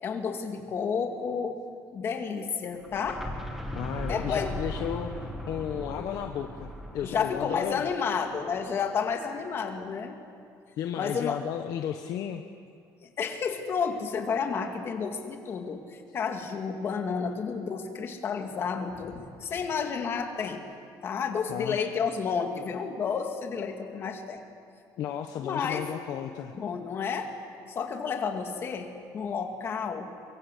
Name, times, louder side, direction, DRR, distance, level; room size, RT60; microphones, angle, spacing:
voice 1, 0.0-1.6 1.9-3.2 4.1-4.6 7.0-10.2 11.0-11.4 13.0-20.7 21.0-24.4 25.4-25.9 26.5-27.3 27.7-30.1, left 6 dB, 30° left, 4 dB, 2.2 m, -31 dB
sound 1, 2.8-8.6, equal, ahead, 2.1 m, -38 dB
voice 2, 3.7-5.1 5.5-7.9 10.8-12.4 21.5-21.8 25.0-26.5, left 10 dB, 55° left, 5 dB, 1.1 m, -34 dB
24.0 x 23.5 x 8.3 m, 2.2 s
cardioid pair, 175°, 8 cm